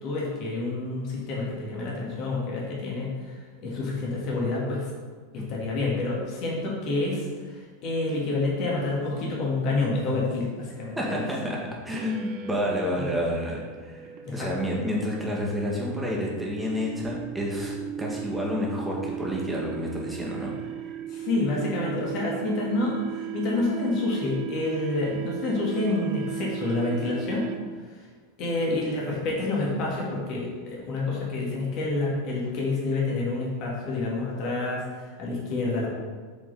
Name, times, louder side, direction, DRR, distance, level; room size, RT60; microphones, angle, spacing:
voice 1, 0.0-4.9 5.3-11.2 13.0-13.1 14.3-14.5 21.1-27.5 28.4-35.9, left 2 dB, 45° left, -4 dB, 2.0 m, -28 dB
voice 2, 11.0-11.6 11.8-20.7, left 1 dB, 5° right, -4 dB, 2.0 m, -30 dB
sound 1, 11.9-27.9, right 10 dB, 45° right, 0.5 m, -37 dB
8.2 x 5.0 x 4.1 m, 1.5 s
figure-of-eight pair, 85°, 0 cm